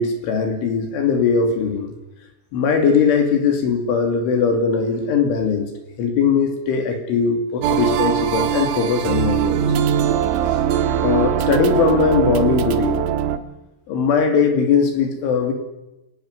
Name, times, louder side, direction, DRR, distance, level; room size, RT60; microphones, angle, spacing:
voice 1, 0.0-1.9 2.5-5.7 6.0-9.6 11.0-13.1 13.9-15.5, left 5 dB, 70° left, 5 dB, 5.0 m, -19 dB
sound 1, 7.6-13.4, right 9 dB, 70° right, 3.6 m, -21 dB
28.0 x 18.0 x 9.7 m, 0.97 s
omnidirectional pair, 5.9 m